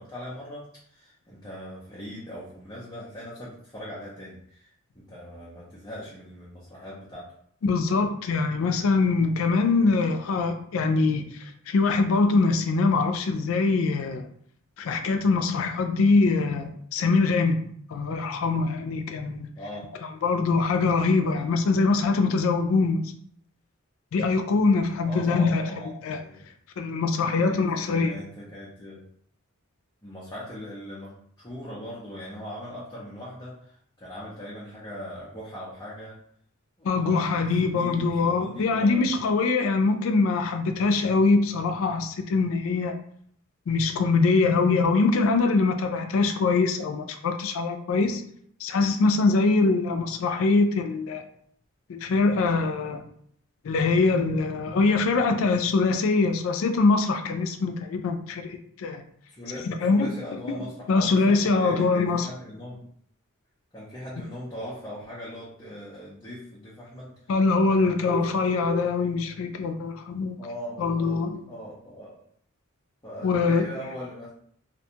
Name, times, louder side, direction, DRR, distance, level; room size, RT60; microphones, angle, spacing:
voice 1, 0.0-7.3 19.5-19.9 21.3-21.4 25.0-26.3 27.2-29.0 30.0-36.2 36.8-39.1 48.3-48.4 59.3-62.8 63.7-67.1 67.6-68.2 70.4-71.2 71.5-72.2 73.0-74.3, equal, 20° left, -7 dB, 0.5 m, -40 dB
voice 2, 7.6-11.3 11.7-14.3 14.8-17.6 17.9-19.5 20.2-23.1 24.1-25.7 26.0-26.2 26.8-28.1 36.8-43.0 43.7-48.2 48.6-51.2 51.9-53.0 53.6-59.0 59.7-60.1 60.5-60.6 60.9-62.3 67.3-70.4 70.8-71.4 73.2-73.7, left 3 dB, 70° left, 6 dB, 0.3 m, -23 dB
2.5 x 2.2 x 2.8 m, 0.64 s
head